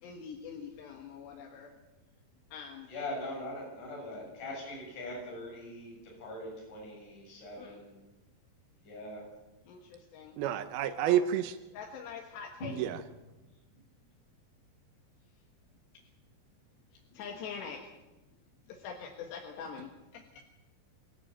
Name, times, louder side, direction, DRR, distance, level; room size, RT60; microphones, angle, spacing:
voice 1, 0.0-1.7 2.5-2.9 7.6-7.8 9.7-10.4 11.0-11.2 11.7-12.8 17.1-17.9 18.7-20.4, left 6 dB, 85° left, 1 dB, 3.8 m, -44 dB
voice 2, 2.9-5.9 6.2-8.0 8.8-9.2 10.4-10.8 12.6-12.7, left 1 dB, 50° left, -2 dB, 8.4 m, -41 dB
voice 3, 10.4-11.6 12.8-13.0, right 10 dB, 75° right, 9 dB, 2.6 m, -29 dB
24.5 x 14.5 x 8.9 m, 1.1 s
omnidirectional pair, 4.8 m